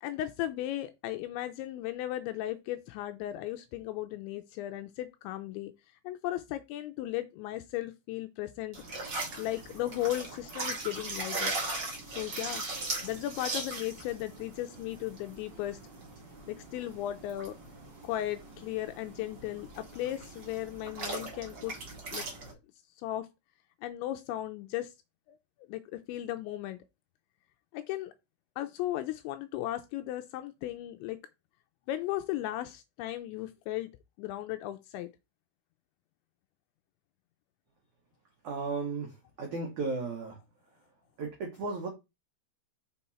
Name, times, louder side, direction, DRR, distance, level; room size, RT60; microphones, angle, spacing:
voice 1, 0.0-5.7 6.0-8.8 9.4-11.6 12.2-12.6 13.0-15.8 16.5-17.6 18.0-21.7 22.1-22.6 23.0-23.3 23.8-24.9 25.3-25.4 25.7-26.8 27.7-28.1 28.6-31.2 31.9-33.9 34.2-35.1, left 14 dB, 85° left, 2.7 m, -36 dB
sound 1, 8.7-22.5, right 2 dB, 45° right, 1.4 m, -39 dB
voice 2, 38.4-40.4 41.2-41.9, right 3 dB, 80° right, 1.7 m, -35 dB
6.8 x 4.5 x 4.2 m
omnidirectional pair, 5.6 m